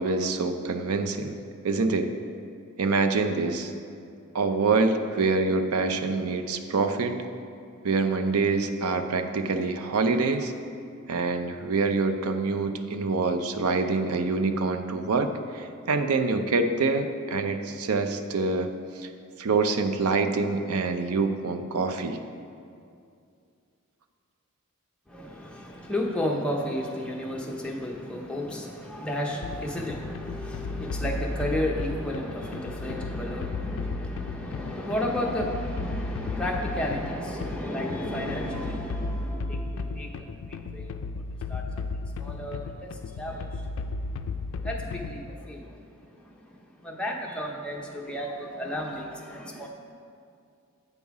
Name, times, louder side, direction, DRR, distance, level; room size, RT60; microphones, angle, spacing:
voice 1, 0.0-1.3 1.6-2.1 2.8-3.7 4.3-7.1 7.8-10.5 11.1-18.7 19.0-19.1 19.4-22.2, right 3 dB, 85° right, 7 dB, 0.5 m, -26 dB
voice 2, 25.1-41.0 41.5-41.6 42.2-43.7 44.6-45.8 46.1-46.2 46.8-49.7, left 1 dB, 5° left, -1 dB, 0.7 m, -33 dB
sound 1, 29.4-45.3, left 3 dB, 60° left, 0.3 m, -34 dB
8.2 x 5.5 x 4.8 m, 2.4 s
head